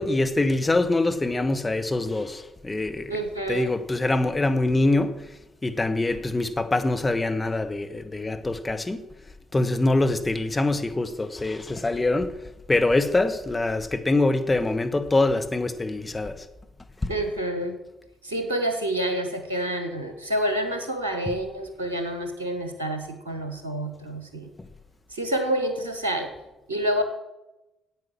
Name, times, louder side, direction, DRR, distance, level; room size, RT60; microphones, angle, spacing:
voice 1, 0.0-3.2 3.5-5.4 5.6-9.0 9.5-12.3 12.7-16.4 17.0-17.1, left 2 dB, 20° left, 1.2 m, -24 dB
voice 2, 3.1-3.7 17.1-17.8 18.2-24.5 25.1-26.3 26.7-27.0, right 1 dB, 85° right, 1.1 m, -28 dB
9.0 x 8.4 x 7.4 m
figure-of-eight pair, 40°, 0 cm